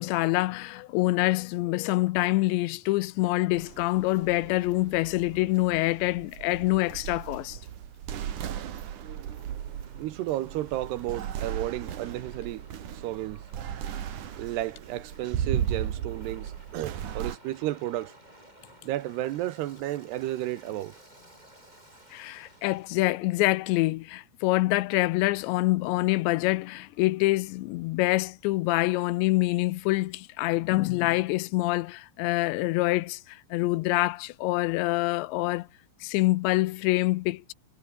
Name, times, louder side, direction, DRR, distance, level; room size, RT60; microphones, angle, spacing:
voice 1, 0.0-7.6 22.1-35.7 36.0-37.5, left 20 dB, 85° left, 3.0 m, -26 dB
sound 1, 3.6-17.4, right 10 dB, 55° right, 2.8 m, -36 dB
Waves surf, 7.5-23.2, right 1 dB, 10° right, 6.4 m, -56 dB
voice 2, 10.0-12.7 12.9-13.5 14.4-18.2 18.8-21.0, right 14 dB, 75° right, 2.9 m, -32 dB
omnidirectional pair, 5.1 m